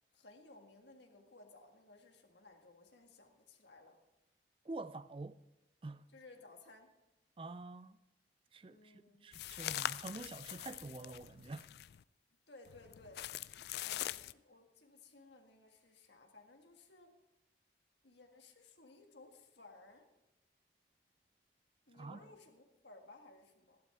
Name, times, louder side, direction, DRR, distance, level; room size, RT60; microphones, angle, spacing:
voice 1, 0.1-4.0 6.1-6.9 8.7-9.3 12.5-13.2 13.8-17.1 18.0-20.1 21.9-23.8, left 2 dB, 85° left, 1.8 m, -59 dB
voice 2, 4.6-5.4 5.8-6.1 7.4-8.0 8.5-11.7 21.9-22.3, right 2 dB, 30° right, 0.4 m, -47 dB
sound 1, 9.3-12.0 12.7-14.3, left 12 dB, 65° left, 0.3 m, -43 dB
14.5 x 11.5 x 3.6 m
head